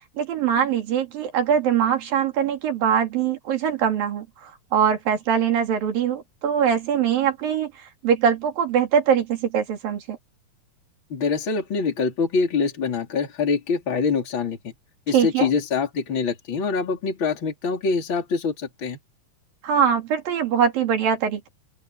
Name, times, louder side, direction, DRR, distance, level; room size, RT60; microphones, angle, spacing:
voice 1, 0.2-7.7 8.0-10.2 15.1-15.5 19.6-21.5, right 8 dB, 75° right, 4.6 m, -22 dB
voice 2, 11.1-14.7 15.1-19.0, left 5 dB, 35° left, 4.0 m, -24 dB
open air
omnidirectional pair, 4.1 m